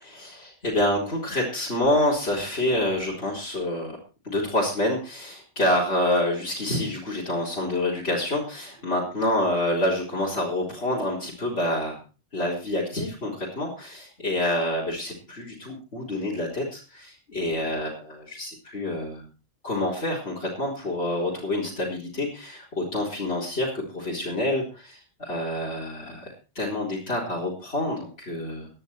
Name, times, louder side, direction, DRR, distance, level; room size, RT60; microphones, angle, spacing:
voice 1, 0.0-4.0 4.2-12.0 12.3-19.3 19.6-28.7, left 1 dB, 60° left, -5 dB, 4.5 m, -27 dB
17.5 x 10.5 x 4.5 m, 0.33 s
omnidirectional pair, 1.2 m